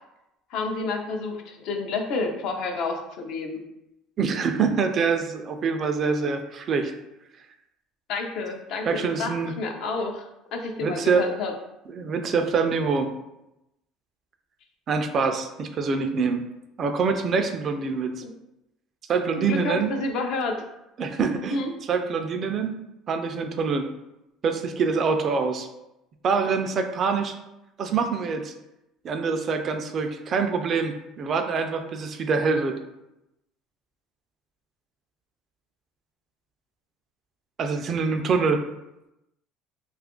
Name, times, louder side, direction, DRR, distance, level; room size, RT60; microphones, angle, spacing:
voice 1, 0.5-3.6 8.1-11.5 18.2-18.3 19.4-20.6 21.5-21.7, left 3 dB, 65° left, 3 dB, 0.5 m, -30 dB
voice 2, 4.2-6.9 8.9-9.5 10.8-11.3 11.9-13.1 14.9-16.4 16.8-18.2 19.1-19.9 21.0-21.6 21.9-22.7 23.1-23.9 24.4-25.7 26.2-27.3 27.8-28.5 29.0-32.8 37.6-38.6, right 5 dB, 40° right, 6 dB, 0.4 m, -25 dB
2.9 x 2.4 x 3.6 m, 0.90 s
cardioid pair, 130°, 0 cm